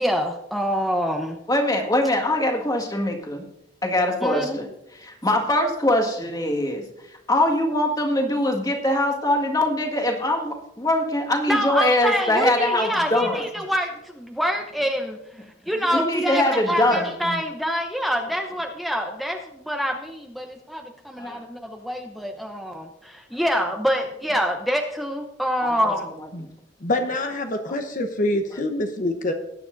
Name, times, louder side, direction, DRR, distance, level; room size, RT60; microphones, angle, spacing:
voice 1, 0.0-1.4 4.2-4.6 11.5-15.2 15.7-26.1, equal, ahead, 2 dB, 0.8 m, -26 dB
voice 2, 1.5-3.4 3.8-4.7 5.0-6.8 7.3-13.4 15.9-17.1 21.2-21.4 25.6-25.8, left 1 dB, 20° left, 3 dB, 1.8 m, -22 dB
voice 3, 26.8-29.3, left 1 dB, 45° left, 5 dB, 1.0 m, -25 dB
19.5 x 9.8 x 2.6 m, 0.81 s
head